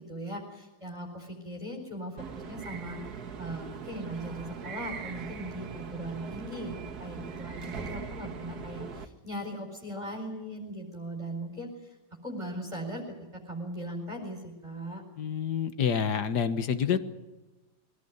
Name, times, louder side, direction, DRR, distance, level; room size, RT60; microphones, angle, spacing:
voice 1, 0.1-12.0 12.2-15.0, right 1 dB, 15° right, -1 dB, 4.5 m, -39 dB
sound 1, 2.2-9.1, right 6 dB, 65° right, 1.9 m, -41 dB
voice 2, 15.2-17.0, left 7 dB, 75° left, 11 dB, 1.9 m, -28 dB
22.5 x 18.0 x 9.6 m, 1.1 s
omnidirectional pair, 1.8 m